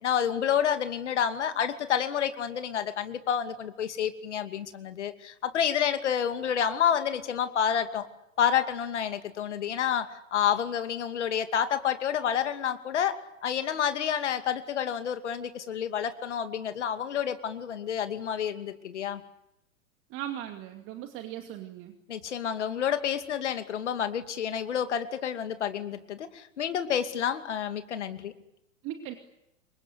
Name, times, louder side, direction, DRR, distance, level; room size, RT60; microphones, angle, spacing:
voice 1, 0.0-8.1 8.4-13.2 13.4-19.2 22.1-28.3, left 8 dB, 60° left, 9 dB, 2.6 m, -29 dB
voice 2, 20.1-21.9 28.8-29.1, right 11 dB, 30° right, 5 dB, 2.5 m, -38 dB
27.5 x 24.0 x 8.2 m, 0.86 s
figure-of-eight pair, 105°, 39 cm